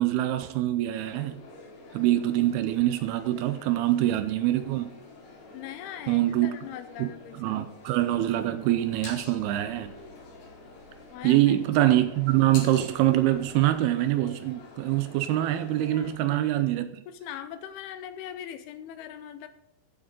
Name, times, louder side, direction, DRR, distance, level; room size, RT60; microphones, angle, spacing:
voice 1, 0.0-1.4 1.9-4.9 6.1-6.6 7.0-7.1 7.3-9.9 11.2-17.0, right 14 dB, 80° right, 2.5 m, -24 dB
sound 1, 0.9-16.2, left 3 dB, 60° left, 4.5 m, -49 dB
voice 2, 5.5-7.6 11.1-11.4 15.9-16.7 17.1-19.5, left 10 dB, 80° left, 2.6 m, -41 dB
sound 2, 7.8-13.8, left 3 dB, 45° left, 4.8 m, -48 dB
14.5 x 8.4 x 3.8 m
omnidirectional pair, 4.9 m